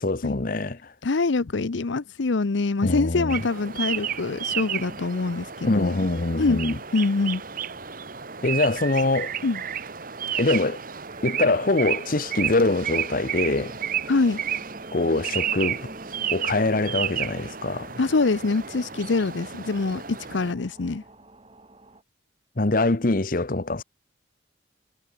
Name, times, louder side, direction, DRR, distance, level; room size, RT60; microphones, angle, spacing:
voice 1, 0.0-0.9 2.8-3.4 5.7-6.8 8.4-9.3 10.4-10.8 11.2-13.8 14.9-15.9 16.3-18.0 22.6-23.8, left 2 dB, 50° left, 1.0 m, -24 dB
voice 2, 1.0-6.0 6.4-6.6 6.9-7.4 9.4-9.6 14.1-14.4 18.0-21.0, left 3 dB, 80° left, 0.7 m, -24 dB
sound 1, 3.3-20.5, right 9 dB, 50° right, 1.8 m, -32 dB
sound 2, 11.1-22.0, right 1 dB, 30° right, 3.9 m, -47 dB
head